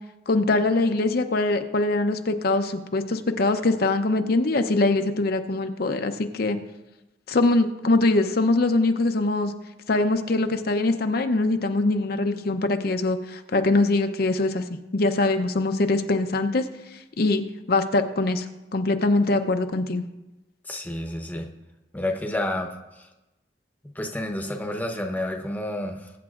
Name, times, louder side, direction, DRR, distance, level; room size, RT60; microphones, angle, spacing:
voice 1, 0.3-6.6 7.3-9.5 9.9-14.6 14.9-16.6 17.2-17.4 17.7-18.5 18.7-20.0, left 2 dB, 60° left, 7 dB, 0.7 m, -23 dB
voice 2, 20.6-21.5 21.9-22.7 23.0-23.1 23.9-26.2, left 1 dB, 10° left, 3 dB, 0.9 m, -30 dB
21.5 x 8.7 x 2.5 m, 1.0 s
head